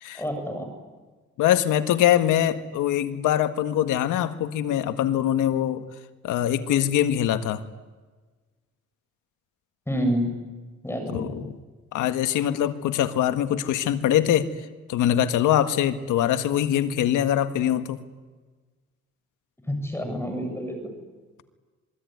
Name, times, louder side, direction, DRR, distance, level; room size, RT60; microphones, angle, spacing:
voice 1, 0.1-0.7 9.9-10.4 10.8-11.3 19.7-20.9, equal, 10° left, 5 dB, 7.8 m, -28 dB
voice 2, 1.4-5.8 6.2-7.6 11.1-11.5 11.9-14.5 14.9-18.0, left 11 dB, 90° left, 9 dB, 1.7 m, -23 dB
26.0 x 23.0 x 9.5 m, 1.3 s
cardioid pair, 90°, 30 cm